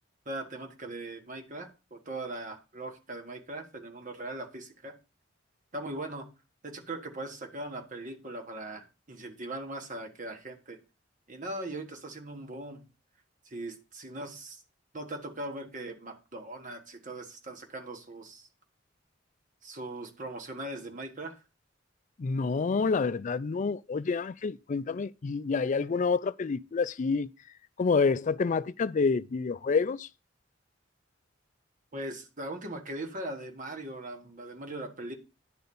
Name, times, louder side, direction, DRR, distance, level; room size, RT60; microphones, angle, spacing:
voice 1, 0.2-4.9 5.7-6.3 6.6-10.8 11.3-12.8 13.5-14.6 14.9-18.5 19.6-21.4 31.9-35.2, right 2 dB, 45° right, 1.4 m, -40 dB
voice 2, 22.2-27.3 27.8-30.1, left 4 dB, 40° left, 0.4 m, -28 dB
10.0 x 4.1 x 6.9 m
head